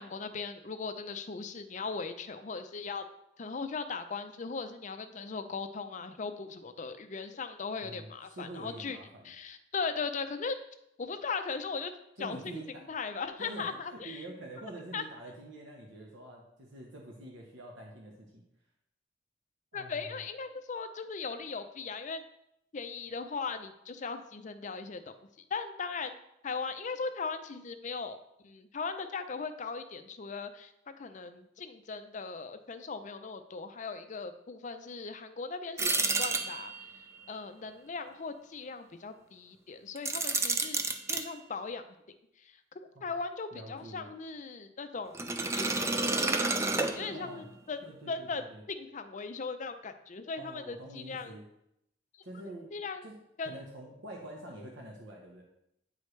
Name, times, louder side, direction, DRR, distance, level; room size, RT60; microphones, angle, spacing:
voice 1, 0.0-3.0 3.4-9.0 9.2-10.6 11.0-11.9 12.2-14.3 14.9-15.0 19.7-22.2 22.7-25.2 25.5-26.2 26.4-28.2 28.4-36.7 37.3-40.8 41.1-41.8 42.4-42.6 43.0-45.2 45.6-46.5 46.9-51.4 52.7-53.1 53.4-53.6, left 4 dB, 40° left, 9 dB, 0.5 m, -38 dB
voice 2, 7.8-9.3 12.2-12.9 13.4-18.4 19.7-20.2 42.9-43.1 43.5-44.1 47.1-47.5 47.8-48.6 50.4-51.4 52.2-52.7 53.0-53.2 53.4-55.4, right 1 dB, 75° right, -1 dB, 1.0 m, -46 dB
sound 1, 35.8-36.9 40.0-41.2 45.1-47.4, right 3 dB, 15° right, 0.4 m, -30 dB
9.2 x 4.9 x 3.2 m, 0.79 s
head